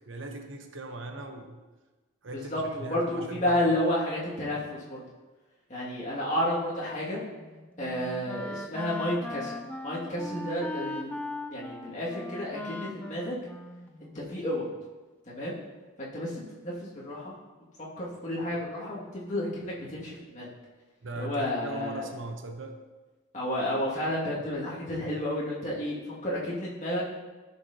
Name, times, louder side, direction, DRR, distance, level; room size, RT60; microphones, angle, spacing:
voice 1, 0.1-1.6 2.2-3.6 21.0-22.8, right 2 dB, 65° right, 5 dB, 0.9 m, -39 dB
voice 2, 2.3-5.0 5.7-7.2 7.8-9.6 9.8-11.1 11.5-13.3 14.0-14.7 15.3-15.6 16.0-17.3 18.0-20.5 21.1-22.0 23.3-27.0, left 1 dB, 35° left, -7 dB, 2.1 m, -31 dB
Wind instrument woodwind instrument, 7.3-14.4, left 1 dB, 5° left, 0.3 m, -39 dB
14.5 x 5.8 x 2.8 m, 1.2 s
head